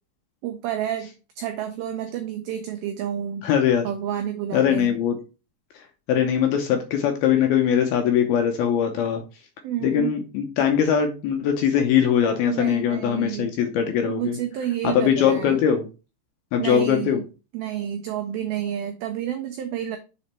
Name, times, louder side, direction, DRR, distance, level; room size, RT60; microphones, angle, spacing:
voice 1, 0.4-3.5 3.8-4.9 9.6-10.1 12.4-13.5 14.0-15.6 16.6-17.2 17.5-20.0, right 10 dB, 90° right, 6 dB, 2.1 m, -30 dB
voice 2, 3.4-3.9 4.5-5.2 6.1-9.2 9.8-14.4 14.8-15.9 16.5-17.2, left 8 dB, 75° left, 4 dB, 2.3 m, -21 dB
7.0 x 4.2 x 4.3 m, 0.31 s
omnidirectional pair, 5.2 m